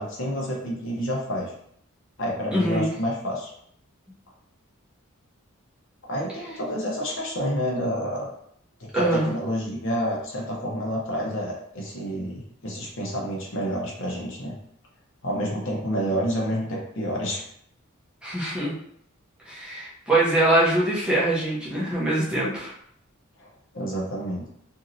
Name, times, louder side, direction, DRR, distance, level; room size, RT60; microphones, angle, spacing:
voice 1, 0.0-1.5 2.2-3.5 6.1-8.3 8.8-14.6 15.2-17.4 23.4-23.5 23.7-24.4, equal, 60° left, -3 dB, 0.8 m, -29 dB
voice 2, 2.5-2.9 8.9-9.3 18.2-18.7 19.4-22.7, right 1 dB, 5° right, -7 dB, 0.7 m, -23 dB
3.0 x 2.7 x 2.6 m, 0.68 s
head